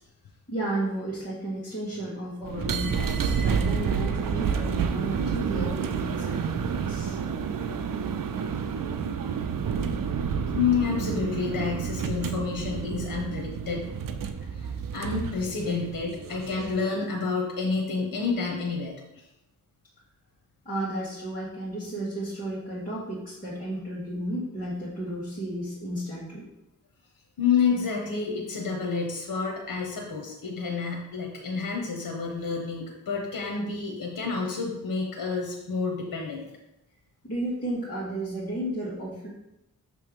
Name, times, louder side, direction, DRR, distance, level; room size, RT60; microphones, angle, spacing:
voice 1, 0.5-7.2 20.7-26.4 27.7-27.8 37.2-39.3, right 1 dB, 25° left, -9 dB, 2.0 m, -33 dB
sound 1, 2.4-16.9, right 6 dB, 70° right, 0.6 m, -29 dB
voice 2, 10.5-13.9 14.5-19.2 27.4-36.4, left 5 dB, 85° left, 0 dB, 1.0 m, -29 dB
6.5 x 3.4 x 5.2 m, 0.86 s
wide cardioid pair, 70°, 34 cm